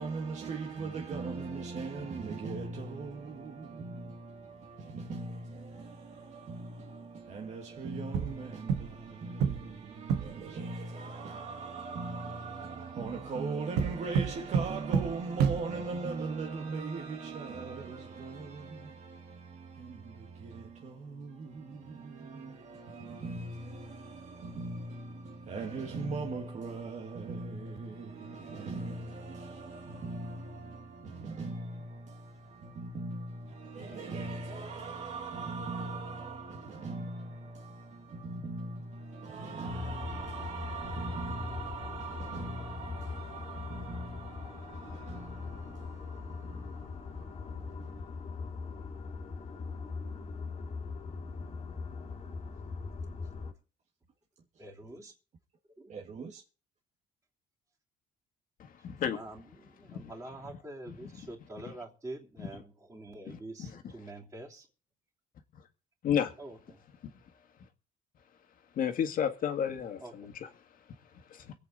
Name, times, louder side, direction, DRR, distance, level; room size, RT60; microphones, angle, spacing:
voice 1, 0.0-48.1 55.9-56.4, right 3 dB, 45° right, 1.4 m, -40 dB
sound 1, 8.1-9.1 9.4-10.5 13.8-16.0, right 7 dB, 80° right, 1.2 m, -30 dB
sound 2, 39.7-53.5, left 4 dB, 40° left, 2.1 m, -41 dB
voice 2, 54.6-55.1 55.8-55.9 58.8-58.9 59.1-64.7 66.4-66.8 70.0-70.3, right 2 dB, 15° right, 3.1 m, -46 dB
voice 3, 58.6-59.2 59.9-60.1 60.9-61.3 62.4-62.5 63.3-63.8 65.5-65.7 66.0-66.3 67.0-67.1 67.6-67.7 68.7-71.5, left 8 dB, 55° left, 1.9 m, -34 dB
24.0 x 8.4 x 4.0 m
cardioid pair, 110°, 17 cm